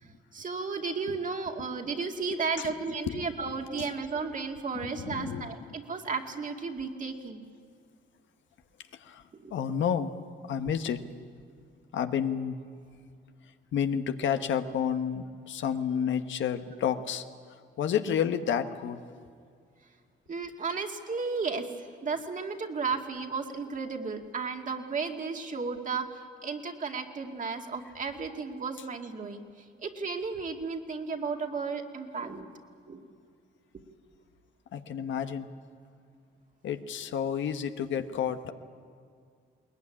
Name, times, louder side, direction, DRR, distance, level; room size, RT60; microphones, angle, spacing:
voice 1, 0.3-7.5 9.3-9.5 20.3-21.7 22.0-29.4 29.8-32.5 32.9-33.0, right 4 dB, 40° right, 3 dB, 2.3 m, -34 dB
voice 2, 3.1-3.9 4.7-5.8 9.0-10.1 10.4-11.0 11.9-12.6 13.7-17.2 17.8-19.0 34.7-35.5 36.6-38.5, left 8 dB, 70° left, 8 dB, 1.3 m, -30 dB
21.5 x 19.5 x 9.9 m, 2.1 s
cardioid pair, 90°, 20 cm